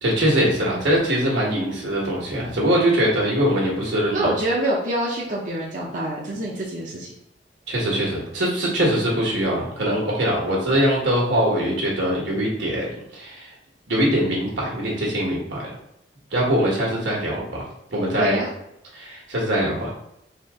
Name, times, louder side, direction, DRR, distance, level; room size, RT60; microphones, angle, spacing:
voice 1, 0.0-4.3 7.7-12.9 13.1-13.5 13.9-15.6 16.3-17.7 17.9-18.4 18.9-19.9, equal, 80° right, -3 dB, 1.6 m, -22 dB
voice 2, 4.1-7.1 8.9-9.0 18.2-18.5, right 1 dB, 45° right, -5 dB, 0.8 m, -26 dB
4.4 x 3.0 x 3.6 m, 0.81 s
head